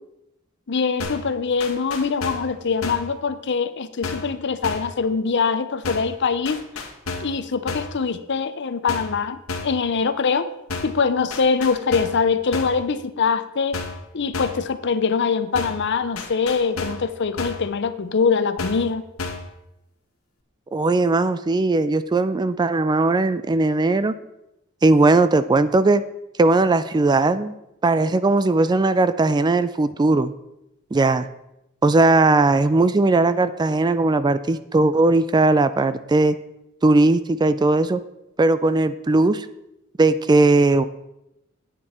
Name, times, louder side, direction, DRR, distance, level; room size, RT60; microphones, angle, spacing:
voice 1, 0.7-6.6 7.2-9.4 9.6-10.5 10.8-13.8 14.1-19.0, left 5 dB, 55° left, 12 dB, 0.6 m, -23 dB
sound 1, 1.0-1.3 1.6-2.5 2.8-3.1 4.0-4.3 4.6-5.0 5.8-6.2 6.4-7.4 7.7-8.0 8.9-9.2 9.5-9.8 10.7-11.0 11.3-12.2 12.5-12.8 13.7-14.1 14.3-14.7 15.5-15.9 16.2-17.1 17.4-17.7 18.6-18.9 19.2-19.5, left 3 dB, 85° left, 1.5 m, -31 dB
voice 2, 20.7-24.1 24.8-26.0 26.4-27.5 27.8-30.3 30.9-31.3 31.8-36.4 36.8-38.0 38.4-39.5 40.0-40.8, right 2 dB, 20° right, 13 dB, 0.3 m, -18 dB
9.7 x 8.6 x 4.3 m, 0.88 s
head